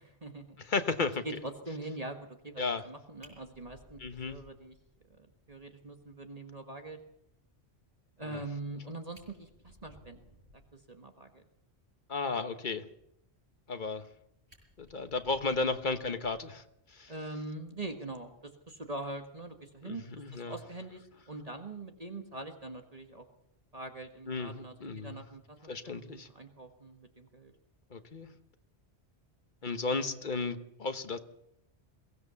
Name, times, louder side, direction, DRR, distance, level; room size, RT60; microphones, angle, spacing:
voice 1, 0.0-0.6 1.2-4.0 4.2-4.7 5.1-7.0 8.2-10.2 10.7-11.4 17.1-20.0 20.3-23.3 23.7-27.5, right 2 dB, 35° right, 5 dB, 1.6 m, -43 dB
voice 2, 0.6-1.2 2.6-2.8 4.0-4.4 8.2-8.4 12.1-12.8 13.7-14.0 14.8-16.6 16.9-17.1 19.8-20.5 24.3-25.2 25.7-26.3 27.9-28.3 29.6-31.2, left 3 dB, 50° left, 9 dB, 1.3 m, -34 dB
Fire, 3.2-5.1 5.5-5.6 6.0-6.1 6.4-6.5 8.7-8.8 9.0-10.8 13.6-14.1 14.5-16.7 18.0-18.2, equal, 90° right, 6.4 m, -59 dB
22.5 x 17.0 x 7.0 m, 0.79 s
omnidirectional pair, 1.1 m